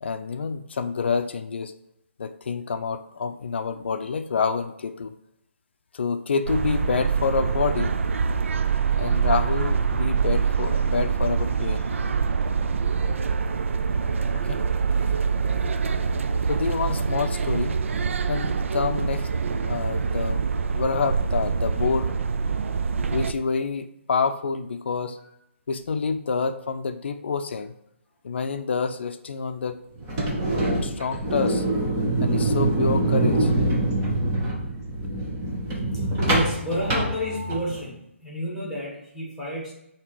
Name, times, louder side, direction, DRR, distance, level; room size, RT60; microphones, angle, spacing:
voice 1, 0.0-1.7 2.2-5.1 5.9-8.0 9.0-11.8 14.3-14.6 16.5-17.7 18.3-22.2 23.1-25.2 25.7-27.7 28.2-29.8 30.8-31.6 32.2-33.5, left 5 dB, 60° left, 9 dB, 0.5 m, -28 dB
sound 1, 6.5-23.3, right 5 dB, 70° right, 0.4 m, -25 dB
sound 2, 30.0-37.8, right 1 dB, 15° right, 0.8 m, -24 dB
voice 2, 35.9-39.7, equal, ahead, -5 dB, 1.4 m, -30 dB
6.8 x 2.9 x 4.8 m, 0.81 s
hypercardioid pair, 175°, 7 cm